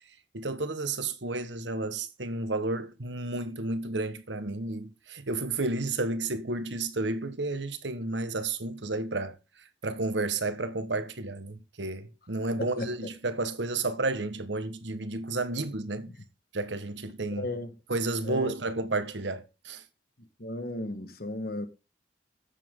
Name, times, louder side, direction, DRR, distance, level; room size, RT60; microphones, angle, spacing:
voice 1, 0.3-9.4 9.8-16.1 16.5-17.4 17.9-19.8, right 2 dB, 90° right, 1.5 m, -31 dB
voice 2, 12.6-12.9 16.1-16.2 17.3-17.7 18.2-18.5 20.4-21.7, left 1 dB, 60° left, 1.7 m, -35 dB
13.0 x 8.6 x 3.8 m
head